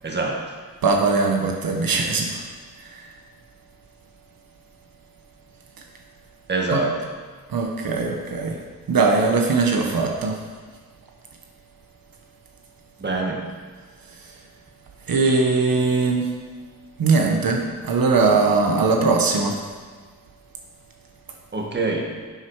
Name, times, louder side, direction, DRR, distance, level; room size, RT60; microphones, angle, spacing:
voice 1, 0.0-0.5 6.5-7.0 13.0-13.4 21.5-22.1, right 3 dB, 30° right, 0 dB, 1.6 m, -25 dB
voice 2, 0.8-2.4 2.8-3.0 6.7-6.8 7.5-8.6 8.9-10.4 14.1-14.2 15.1-16.3 17.0-19.6, right 4 dB, 85° right, 1 dB, 1.4 m, -20 dB
11.0 x 8.2 x 4.8 m, 1.5 s
wide cardioid pair, 130°, 34 cm